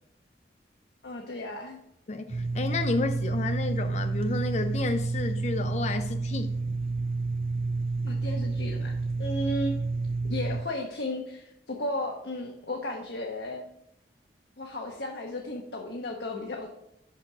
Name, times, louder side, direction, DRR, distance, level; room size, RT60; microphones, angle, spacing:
voice 1, 1.0-1.8 8.0-8.9 9.2-9.7 10.3-13.7 14.6-16.7, left 1 dB, 65° left, 0.9 m, -34 dB
voice 2, 2.1-6.5, left 3 dB, 35° left, 0.4 m, -31 dB
sound 1, 2.3-10.6, right 3 dB, 30° right, 0.4 m, -30 dB
5.9 x 5.8 x 6.0 m
head